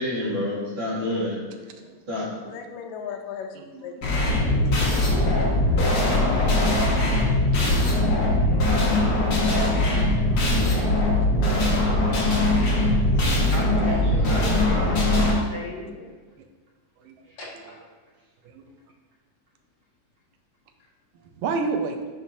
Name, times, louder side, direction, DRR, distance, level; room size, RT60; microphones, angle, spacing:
voice 1, 0.0-1.4 2.1-2.3 11.9-13.5 13.8-15.0, left 1 dB, 45° right, -9 dB, 2.9 m, -31 dB
voice 2, 2.5-3.6 3.8-4.2 5.8-5.9 11.1-11.3 11.5-12.0, left 7 dB, 80° left, 3 dB, 1.9 m, -37 dB
sound 1, 4.0-15.3, left 1 dB, 60° left, 2.7 m, -21 dB
voice 3, 4.7-5.8 7.5-8.2 10.3-10.5 12.7-12.9 13.4-13.5 17.0-17.1 18.4-18.6 21.4-22.0, right 4 dB, 80° right, 5 dB, 1.9 m, -34 dB
voice 4, 6.9-7.5 8.4-9.3 17.3-17.4 17.6-17.7, right 2 dB, 60° right, -6 dB, 1.4 m, -52 dB
voice 5, 13.5-16.1 17.4-17.7, left 2 dB, 40° left, -6 dB, 1.8 m, -36 dB
8.8 x 5.5 x 2.7 m, 1.4 s
omnidirectional pair, 3.3 m